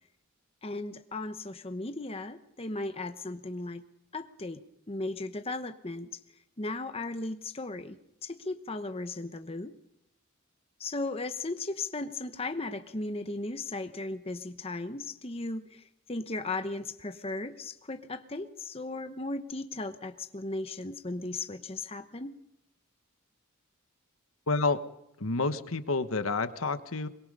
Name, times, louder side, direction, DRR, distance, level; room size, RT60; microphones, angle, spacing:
voice 1, 0.6-3.9 4.1-6.2 6.6-9.7 10.8-22.4, left 2 dB, 25° left, 8 dB, 1.0 m, -36 dB
voice 2, 24.5-24.8 25.2-27.1, left 3 dB, 75° left, 11 dB, 1.2 m, -29 dB
23.0 x 22.0 x 5.4 m, 0.81 s
head